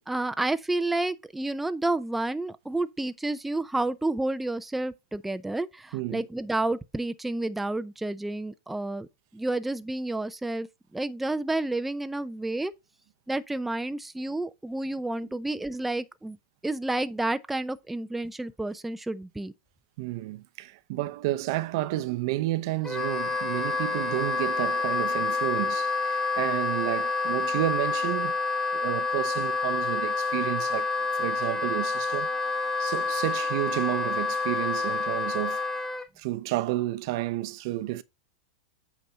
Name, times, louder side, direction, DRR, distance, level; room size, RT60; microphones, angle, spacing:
voice 1, 0.1-9.1 9.3-10.7 10.9-12.7 13.3-16.4 16.6-19.5, right 2 dB, 5° right, 0.5 m, -30 dB
voice 2, 20.0-28.3 28.7-32.3 32.8-35.6 36.2-38.0, right 16 dB, 60° right, 0.7 m, -31 dB
Wind instrument woodwind instrument, 22.8-36.0, left 4 dB, 10° left, 1.1 m, -28 dB
8.3 x 4.2 x 4.9 m
hypercardioid pair, 125°, 3 cm